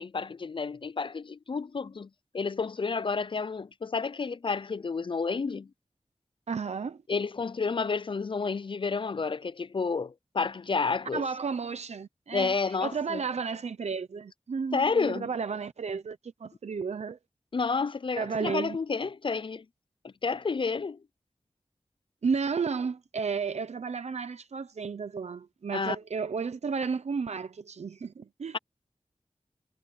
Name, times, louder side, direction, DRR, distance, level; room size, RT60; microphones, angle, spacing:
voice 1, 0.0-5.7 7.1-11.3 12.3-13.2 14.7-15.3 17.5-19.6 20.0-21.0 25.7-26.0, left 4 dB, 50° left, 0.4 m, -30 dB
voice 2, 6.5-7.0 11.1-17.2 18.2-18.8 22.2-28.6, right 5 dB, 90° right, 0.7 m, -33 dB
wide cardioid pair, 65°, 11 cm